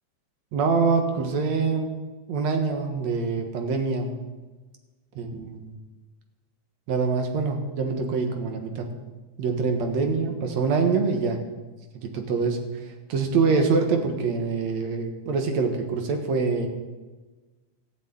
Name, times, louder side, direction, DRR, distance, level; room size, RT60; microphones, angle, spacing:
voice 1, 0.5-1.9 2.3-4.2 5.2-5.7 6.9-8.9 9.4-11.4 11.9-12.6 13.1-16.7, right 4 dB, 70° right, 5 dB, 2.7 m, -25 dB
14.5 x 6.9 x 9.2 m, 1.2 s
omnidirectional pair, 3.3 m